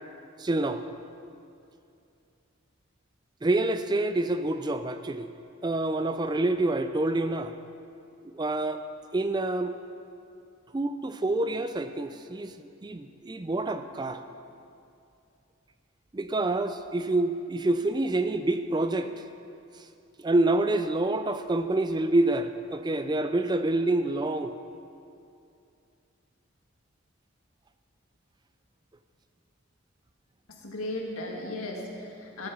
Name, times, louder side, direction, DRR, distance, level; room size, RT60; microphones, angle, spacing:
voice 1, 0.4-0.8 3.4-5.3 5.6-7.5 8.2-8.8 9.1-9.8 10.7-14.2 16.1-19.1 19.8-19.9 20.2-24.6, right 2 dB, 20° right, 10 dB, 0.3 m, -27 dB
voice 2, 30.5-32.5, left 1 dB, 90° left, 0 dB, 1.9 m, -36 dB
14.5 x 7.5 x 6.1 m, 2.6 s
head